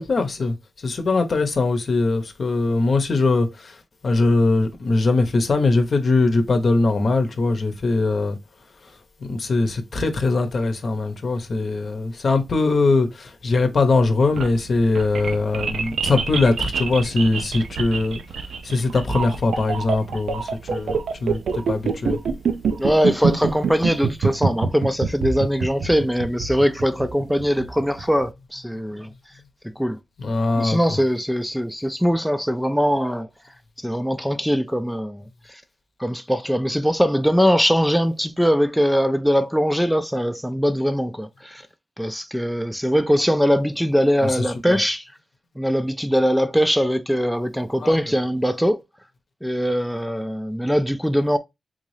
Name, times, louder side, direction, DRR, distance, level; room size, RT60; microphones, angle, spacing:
voice 1, 0.0-8.4 9.2-18.2 18.6-22.2 30.2-31.0 44.2-44.8 47.8-48.0, left 3 dB, 60° left, 0.8 m, -21 dB
sound 1, 14.1-28.2, right 5 dB, 85° right, 0.5 m, -26 dB
voice 2, 22.8-29.1 29.8-30.0 30.6-33.3 33.8-35.6 36.0-41.6 42.0-45.1 45.6-48.8 49.4-51.4, equal, ahead, 0.4 m, -21 dB
3.7 x 2.6 x 3.2 m
cardioid pair, 65°, 0 cm